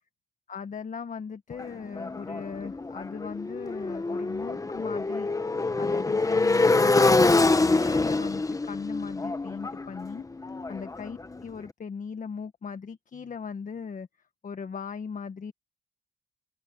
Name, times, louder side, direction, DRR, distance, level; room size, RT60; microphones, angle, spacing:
voice 1, 0.5-5.3 5.8-10.2 10.7-14.1 14.4-15.5, left 6 dB, 40° left, 1.5 m, -38 dB
Motorcycle, 1.6-11.4, left 3 dB, 15° left, 1.1 m, -25 dB
open air
cardioid pair, 90°, 20 cm